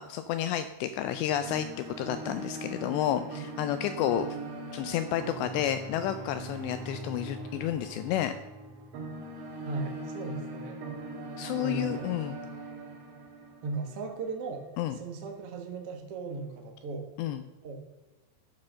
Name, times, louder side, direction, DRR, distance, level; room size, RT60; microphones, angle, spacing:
voice 1, 0.0-1.7 2.0-4.4 4.7-8.3 11.4-12.4 14.8-15.0 17.2-17.4, left 11 dB, 85° left, 10 dB, 2.6 m, -31 dB
sound 1, 1.1-14.2, right 2 dB, 55° right, 3.2 m, -40 dB
voice 2, 9.6-10.8 11.6-12.1 13.6-14.6 14.9-17.1 17.6-17.7, right 3 dB, 80° right, 3 dB, 1.3 m, -37 dB
11.5 x 6.5 x 6.3 m, 1.1 s
omnidirectional pair, 5.4 m